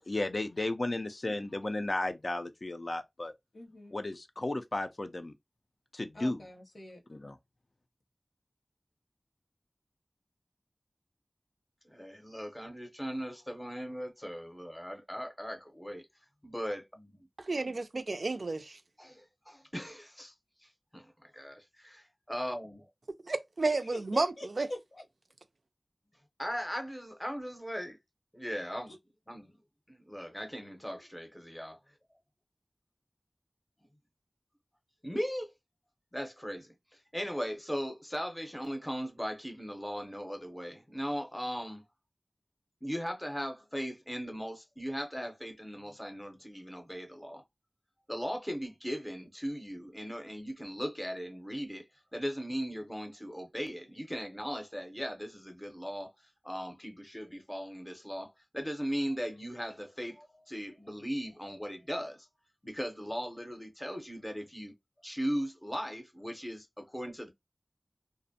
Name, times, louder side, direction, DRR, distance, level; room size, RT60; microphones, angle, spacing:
voice 1, 0.0-3.3 3.9-5.3 5.9-6.4 7.1-7.4, left 2 dB, 60° left, 0.3 m, -34 dB
voice 2, 3.5-3.9 6.1-7.0 23.9-25.0 28.9-29.0, left 1 dB, 80° left, 0.8 m, -45 dB
voice 3, 11.8-16.0 16.4-17.2 19.0-20.3 20.9-21.6 22.3-22.8 26.4-28.0 28.3-28.9 29.3-29.6 29.9-31.8 35.0-35.5 36.1-36.7 37.1-41.8 42.8-47.4 48.1-51.8 52.1-56.1 56.4-62.3 62.6-64.7 65.0-67.3, equal, 10° left, 0.6 m, -38 dB
voice 4, 17.5-18.8 23.3-24.7, right 3 dB, 85° right, 0.3 m, -31 dB
2.5 x 2.0 x 2.6 m
wide cardioid pair, 55°, 0 cm